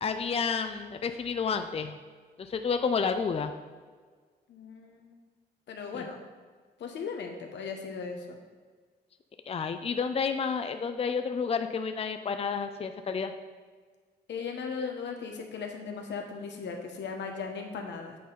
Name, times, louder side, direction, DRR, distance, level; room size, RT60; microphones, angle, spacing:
voice 1, 0.0-1.9 2.4-3.5 5.9-6.0 9.5-13.3, left 5 dB, 35° left, 8 dB, 0.4 m, -30 dB
voice 2, 4.5-5.2 5.7-6.2 6.8-8.4 14.3-18.2, left 5 dB, 85° left, 3 dB, 0.9 m, -37 dB
8.4 x 4.2 x 3.9 m, 1.5 s
cardioid pair, 80°, 18 cm